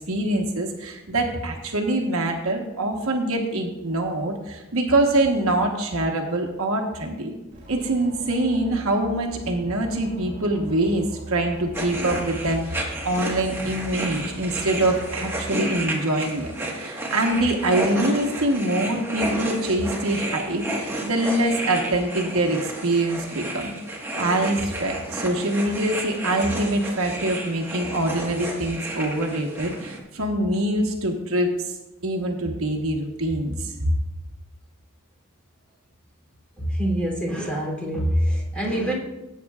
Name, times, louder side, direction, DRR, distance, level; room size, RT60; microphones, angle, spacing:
voice 1, 0.1-7.3 7.7-23.7 24.1-31.7 32.0-33.9, right 1 dB, 75° right, 2 dB, 1.2 m, -24 dB
sound 1, 7.5-15.5, right 1 dB, 40° right, 3.1 m, -41 dB
sound 2, 11.7-30.0, right 1 dB, 10° right, 1.4 m, -32 dB
voice 2, 36.6-38.9, equal, 5° left, -3 dB, 3.0 m, -25 dB
17.0 x 8.5 x 2.4 m, 1.0 s
head